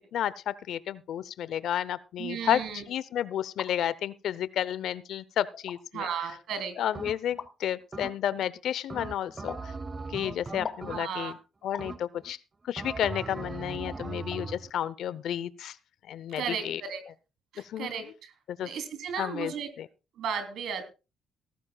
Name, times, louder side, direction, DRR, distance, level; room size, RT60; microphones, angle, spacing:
voice 1, 0.1-6.4 6.8-9.7 10.1-11.4 11.6-12.4 12.7-15.8 16.1-16.8 17.6-18.1 18.5-18.7 19.2-19.9, left 10 dB, 75° left, 19 dB, 0.7 m, -32 dB
voice 2, 2.2-2.8 5.9-6.8 10.9-11.3 16.4-17.0 17.5-18.3 18.6-19.7 20.2-20.8, right 7 dB, 75° right, 8 dB, 3.1 m, -34 dB
sound 1, 3.3-3.7 4.6-4.7 5.5-5.8 7.4-7.5 9.5-9.7 10.6-10.9 11.7-11.9 13.2-13.3 13.9-14.0 14.3-14.4, left 6 dB, 55° left, 1.4 m, -39 dB
sound 2, 6.9-7.5 7.9-8.5 8.9-11.4 11.8-12.3 12.8-14.7, right 3 dB, 30° right, 0.9 m, -39 dB
17.0 x 14.0 x 2.3 m, 0.30 s
cardioid pair, 90°, 0 cm